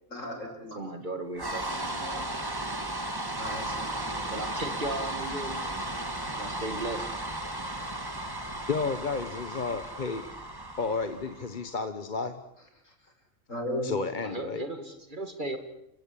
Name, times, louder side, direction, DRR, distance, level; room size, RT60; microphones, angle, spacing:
voice 1, 0.1-0.8 3.3-4.3 13.5-13.9, equal, 70° left, 2 dB, 6.7 m, -36 dB
voice 2, 0.7-2.2 4.3-5.7 6.3-7.1 14.2-15.6, right 2 dB, 35° right, 7 dB, 2.3 m, -36 dB
sound 1, 1.3-11.6, right 1 dB, 15° right, 2.0 m, -35 dB
voice 3, 8.7-10.2 10.8-12.4 13.8-14.6, left 4 dB, 40° left, 9 dB, 1.2 m, -32 dB
29.5 x 17.0 x 8.6 m, 0.80 s
omnidirectional pair, 1.4 m